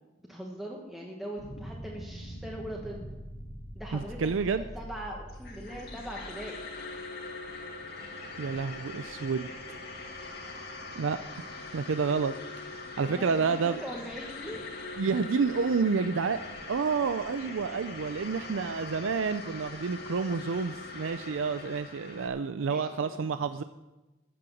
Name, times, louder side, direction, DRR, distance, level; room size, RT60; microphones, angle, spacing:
voice 1, 0.3-3.1 3.7-6.6 13.0-14.6 22.7-23.5, equal, ahead, -2 dB, 1.3 m, -41 dB
sound 1, 1.4-7.1, equal, 75° left, 2.3 m, -44 dB
voice 2, 3.9-4.6 8.4-9.5 10.9-12.3 12.8-13.8 15.0-16.4 16.7-23.6, right 5 dB, 90° right, 11 dB, 0.5 m, -29 dB
sound 2, 5.3-22.3, left 3 dB, 55° left, 2.0 m, -42 dB
14.0 x 7.8 x 7.2 m, 1.1 s
head